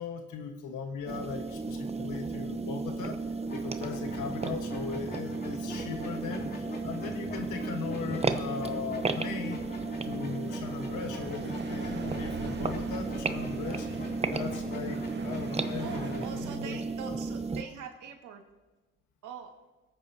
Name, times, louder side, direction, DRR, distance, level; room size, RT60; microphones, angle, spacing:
voice 1, 0.0-3.2 3.5-9.7 10.0-13.9 14.3-16.8, left 6 dB, 85° left, 5 dB, 1.5 m, -38 dB
sound 1, 1.1-17.6, right 3 dB, 20° right, 0.7 m, -34 dB
sound 2, 3.5-16.3, left 2 dB, 35° left, 2.9 m, -44 dB
sound 3, 9.0-16.6, right 4 dB, 35° right, 1.2 m, -44 dB
voice 2, 15.8-18.4 19.2-19.5, right 7 dB, 90° right, 3 dB, 1.9 m, -43 dB
25.5 x 8.8 x 2.8 m, 1.1 s
cardioid pair, 90°, 30 cm